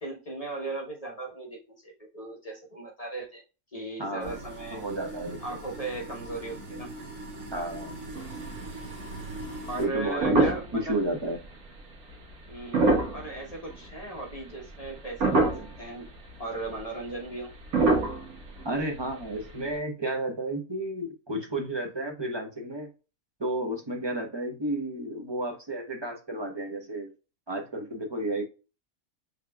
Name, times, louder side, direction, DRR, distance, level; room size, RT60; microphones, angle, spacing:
voice 1, 0.0-3.4 3.7-4.8 5.4-6.9 9.7-11.0 12.5-16.1 16.4-17.5, right 2 dB, 30° left, -1 dB, 1.2 m, -37 dB
voice 2, 4.0-4.4 4.7-5.6 7.5-7.9 9.8-11.4 18.6-22.9 23.4-27.1 27.5-28.4, right 1 dB, 25° right, 3 dB, 0.7 m, -32 dB
sound 1, 4.2-9.9, right 2 dB, 70° right, 2.2 m, -41 dB
sound 2, 8.1-8.9 9.3-9.4 9.8-10.9 11.4-11.5 12.5-14.0 14.4-14.9 15.2-15.9 16.3-16.4 16.6-16.8 17.6-19.2 19.5-19.6, right 3 dB, 85° right, 1.6 m, -25 dB
6.4 x 3.4 x 2.3 m, 0.32 s
omnidirectional pair, 1.5 m